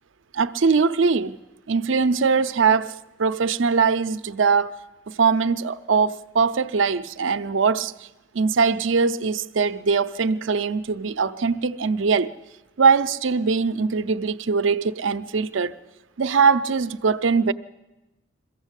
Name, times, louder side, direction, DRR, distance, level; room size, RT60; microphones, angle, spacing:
voice 1, 0.3-1.4 1.7-4.7 5.1-8.1 8.3-12.3 12.8-15.8 16.2-17.5, right 5 dB, 85° right, 0.6 m, -21 dB
22.5 x 15.0 x 8.2 m
head